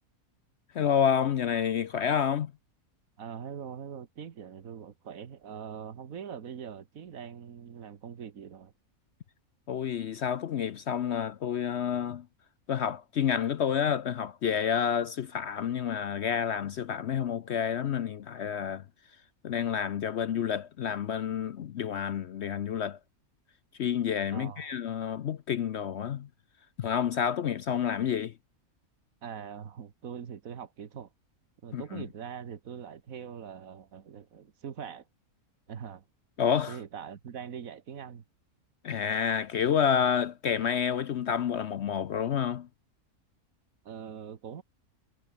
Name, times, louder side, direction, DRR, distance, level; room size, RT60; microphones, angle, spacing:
voice 1, 0.7-2.5 9.7-12.3 12.7-18.8 19.4-23.0 23.8-26.3 26.8-28.3 31.7-32.0 36.4-36.8 38.8-42.7, left 8 dB, 60° left, 0.8 m, -29 dB
voice 2, 3.2-8.7 24.3-24.8 29.2-31.1 31.6-35.1 35.7-36.1 36.7-38.2 43.9-44.6, right 7 dB, 70° right, 1.8 m, -42 dB
omnidirectional pair, 1.5 m